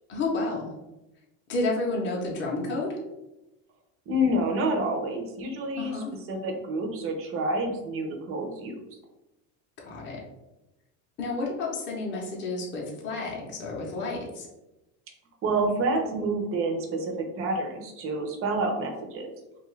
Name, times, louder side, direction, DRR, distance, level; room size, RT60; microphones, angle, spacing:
voice 1, 0.1-0.7 1.5-3.0 5.8-6.1 9.8-10.2 11.2-14.5, left 2 dB, 25° left, -2 dB, 0.6 m, -30 dB
voice 2, 4.1-6.0 6.3-8.8 15.4-19.3, right 1 dB, 30° right, 3 dB, 0.5 m, -28 dB
2.6 x 2.4 x 3.1 m, 0.95 s
supercardioid pair, 125°, 48 cm